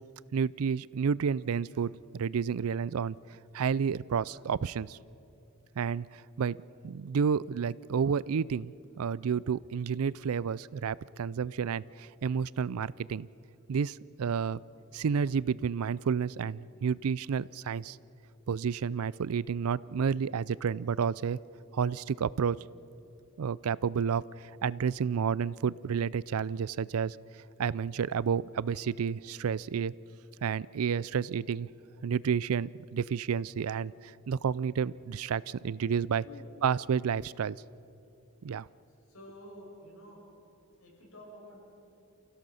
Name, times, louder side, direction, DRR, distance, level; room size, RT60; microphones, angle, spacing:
voice 1, 0.3-3.2 3.5-5.0 5.8-6.6 6.8-13.3 13.7-14.6 14.9-18.0 18.5-21.4 21.7-22.6 23.4-27.2 27.6-29.9 30.4-31.7 32.0-36.2 36.6-37.6 38.4-38.7, right 6 dB, 85° right, 21 dB, 0.4 m, -30 dB
voice 2, 39.0-40.2 40.8-41.6, left 1 dB, 85° left, -1 dB, 6.5 m, -50 dB
28.0 x 16.5 x 6.4 m, 2.9 s
head